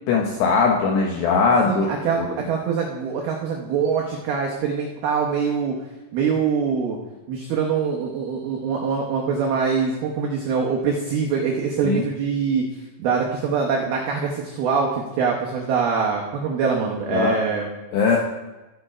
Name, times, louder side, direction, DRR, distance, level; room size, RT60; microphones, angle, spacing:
voice 1, 0.1-1.9 2.2-2.3 11.8-12.0 17.1-17.4 17.9-18.2, left 5 dB, 80° left, 0 dB, 2.4 m, -20 dB
voice 2, 1.6-5.7 6.1-7.0 7.3-12.6 13.0-17.7, right 5 dB, 90° right, -1 dB, 2.1 m, -24 dB
16.0 x 6.5 x 5.0 m, 1.1 s
omnidirectional pair, 6.0 m